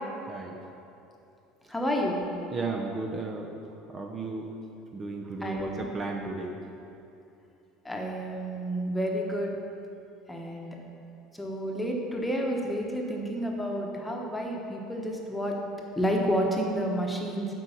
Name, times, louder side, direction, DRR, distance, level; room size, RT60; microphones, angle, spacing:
voice 1, 1.7-2.2 5.4-5.8 7.8-9.6 10.3-10.8 11.3-15.6 15.9-17.5, equal, 10° left, 0 dB, 1.2 m, -30 dB
voice 2, 2.5-3.5 3.9-4.5 4.9-6.6, right 3 dB, 35° right, 1 dB, 0.7 m, -34 dB
7.8 x 4.7 x 5.6 m, 2.8 s
hypercardioid pair, 85°, 0 cm